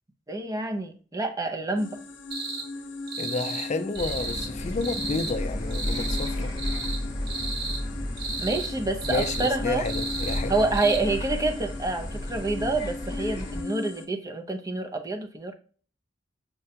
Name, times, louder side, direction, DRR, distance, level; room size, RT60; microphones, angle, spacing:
voice 1, 0.3-2.0 8.4-9.8 10.5-15.5, right 2 dB, 20° right, 0.5 m, -28 dB
sound 1, 1.8-14.1, left 3 dB, 90° left, 0.6 m, -38 dB
sound 2, 2.3-2.7 3.1-3.7 4.0-4.5 4.8-5.3 5.7-6.3 6.6-7.0 7.3-7.8 8.2-8.7 9.0-9.5 9.9-10.4 10.7-11.0, right 3 dB, 60° right, 1.0 m, -33 dB
voice 2, 3.2-6.5 9.1-10.5, left 3 dB, 40° left, 0.4 m, -31 dB
Bus, 3.9-13.6, left 1 dB, 20° left, 0.9 m, -33 dB
5.8 x 2.2 x 2.7 m
head